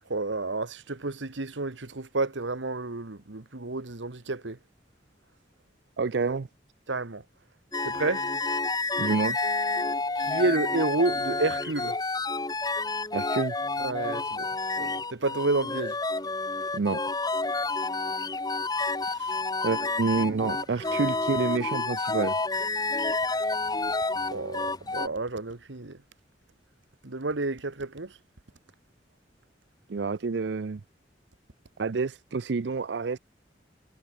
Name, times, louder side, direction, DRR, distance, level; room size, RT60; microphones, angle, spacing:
voice 1, 0.1-4.6 6.9-7.2 7.8-8.2 10.2-11.9 13.8-14.5 14.8-15.9 24.3-24.7 24.9-26.0 27.0-28.1, right 2 dB, 90° right, 1.4 m, -30 dB
voice 2, 6.0-6.5 9.0-9.4 13.1-13.6 16.7-17.0 19.6-22.3 29.9-30.8 31.8-33.2, right 4 dB, 65° right, 0.5 m, -28 dB
sound 1, 7.7-25.1, left 3 dB, 20° left, 1.9 m, -29 dB
head